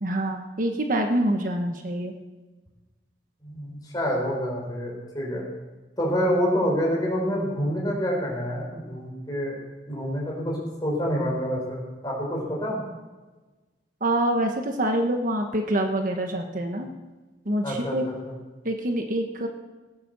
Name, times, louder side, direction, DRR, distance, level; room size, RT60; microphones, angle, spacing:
voice 1, 0.0-2.1 14.0-16.9 17.4-18.0 18.6-19.5, right 1 dB, 50° right, 4 dB, 1.3 m, -26 dB
voice 2, 3.4-5.4 6.0-9.6 9.9-12.8 17.6-18.3, equal, 25° left, -2 dB, 4.9 m, -27 dB
17.5 x 9.4 x 6.9 m, 1.2 s
head